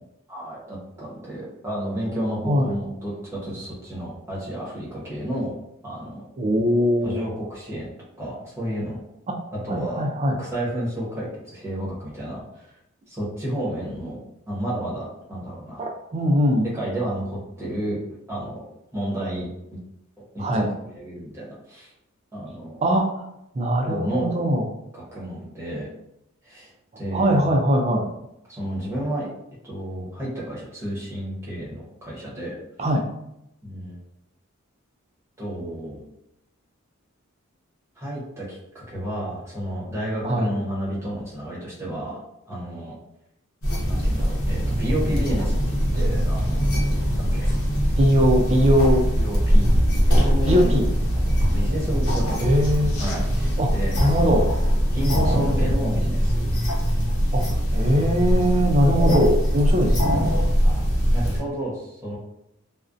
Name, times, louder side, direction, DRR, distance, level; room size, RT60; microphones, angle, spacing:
voice 1, 0.3-5.6 5.8-6.2 7.0-7.9 8.2-9.0 9.5-12.7 13.1-14.2 14.5-15.8 16.7-18.0 18.3-18.6 18.9-19.8 20.3-21.9 22.3-22.8 23.8-24.3 24.9-25.9 26.4-26.7 27.0-27.4 28.5-29.3 29.6-32.5 33.6-34.0 35.4-36.1 38.0-42.2 42.5-42.9 43.9-45.6 45.9-46.6 47.1-47.6 49.2-50.7 51.5-52.7 53.0-54.5 54.9-56.5 58.9-59.2 60.6-62.2, right 1 dB, 10° right, -7 dB, 0.8 m, -31 dB
voice 2, 6.4-7.2 9.7-10.4 15.8-16.7 20.4-20.7 22.8-23.2 23.5-24.6 27.1-28.1 32.8-33.0 40.2-40.5 48.0-49.0 50.5-50.9 52.4-53.0 53.6-53.7 54.0-54.5 55.0-55.9 57.3-57.4 57.7-60.2, equal, 30° right, 1 dB, 0.3 m, -21 dB
sound 1, 43.6-61.4, equal, 90° left, 0.8 m, -21 dB
2.4 x 2.0 x 2.4 m, 0.82 s
head